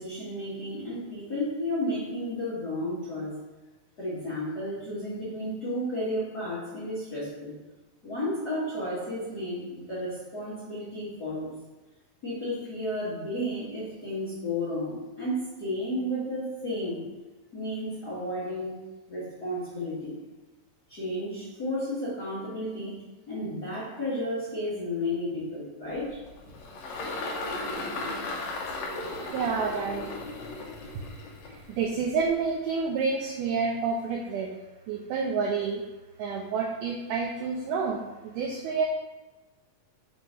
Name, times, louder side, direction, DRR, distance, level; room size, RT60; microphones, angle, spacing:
voice 1, 0.0-3.4 4.0-7.5 8.0-11.5 12.2-17.0 17.5-18.7 19.1-20.2 20.9-23.0 23.3-26.2, left 1 dB, 45° left, -11 dB, 1.3 m, -32 dB
Engine, 25.9-32.5, left 2 dB, 80° left, 1.5 m, -36 dB
voice 2, 29.3-30.1 30.9-31.0 31.5-34.5 34.9-35.8 36.2-38.9, right 5 dB, 85° right, 1 dB, 1.8 m, -29 dB
6.5 x 4.0 x 3.8 m, 1.2 s
omnidirectional pair, 4.2 m